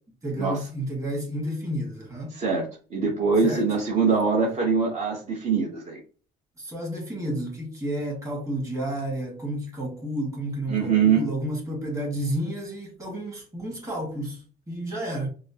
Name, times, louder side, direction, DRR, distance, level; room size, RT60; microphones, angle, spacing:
voice 1, 0.2-2.4 3.4-3.6 6.6-14.4 14.7-15.3, right 1 dB, 20° right, 1.9 m, -31 dB
voice 2, 2.3-2.6 2.9-6.0 10.7-11.3, right 5 dB, 45° right, 1.1 m, -23 dB
4.9 x 2.1 x 2.8 m
cardioid pair, 110°, 17 cm